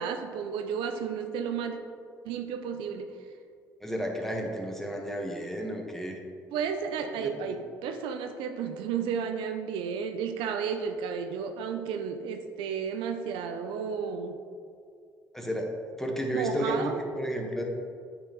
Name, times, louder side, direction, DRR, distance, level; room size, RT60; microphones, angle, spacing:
voice 1, 0.0-1.8 2.2-3.1 6.5-14.4 16.3-17.0, right 6 dB, 70° right, 6 dB, 0.5 m, -32 dB
voice 2, 3.8-6.2 7.2-7.3 15.3-17.6, equal, 5° left, 1 dB, 1.2 m, -32 dB
8.5 x 5.1 x 3.0 m, 2.3 s
hypercardioid pair, 55°, 9 cm